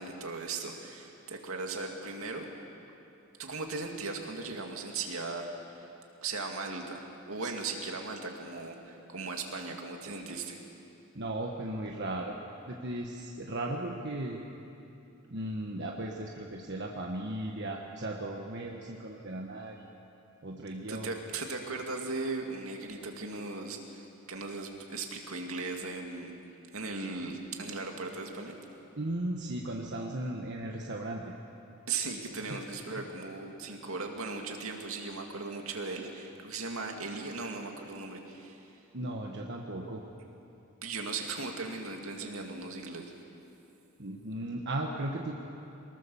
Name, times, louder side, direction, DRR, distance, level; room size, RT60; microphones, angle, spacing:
voice 1, 0.0-2.5 3.4-5.8 6.2-10.6 20.9-24.0 24.3-26.3 26.7-28.5 31.9-38.6 40.8-43.1, right 3 dB, 70° right, 2 dB, 2.4 m, -38 dB
voice 2, 11.1-12.3 12.7-14.4 15.3-19.9 20.4-21.1 29.0-31.2 32.5-32.6 38.9-40.0 44.0-45.3, right 1 dB, 50° right, 0 dB, 1.4 m, -36 dB
23.5 x 20.0 x 7.2 m, 2.8 s
head